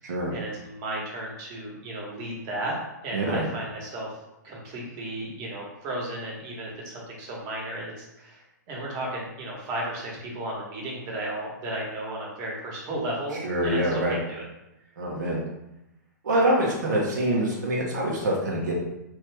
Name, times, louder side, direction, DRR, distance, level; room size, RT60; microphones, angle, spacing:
voice 1, 0.3-2.7 3.0-4.2 4.4-14.5, right 1 dB, 35° right, -3 dB, 1.2 m, -34 dB
voice 2, 3.1-3.4 13.4-14.1 15.0-15.4 16.2-18.8, right 1 dB, 75° right, -3 dB, 0.9 m, -25 dB
3.0 x 2.7 x 3.4 m, 0.91 s
hypercardioid pair, 125°, 10 cm